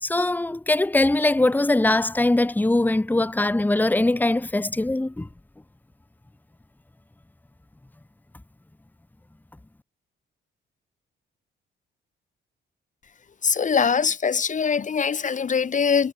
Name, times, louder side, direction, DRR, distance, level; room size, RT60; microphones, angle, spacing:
voice 1, 0.0-5.3, left 2 dB, 10° left, 1.3 m, -21 dB
voice 2, 13.4-16.1, left 6 dB, 40° left, 1.4 m, -22 dB
cardioid pair, 90°, 20 cm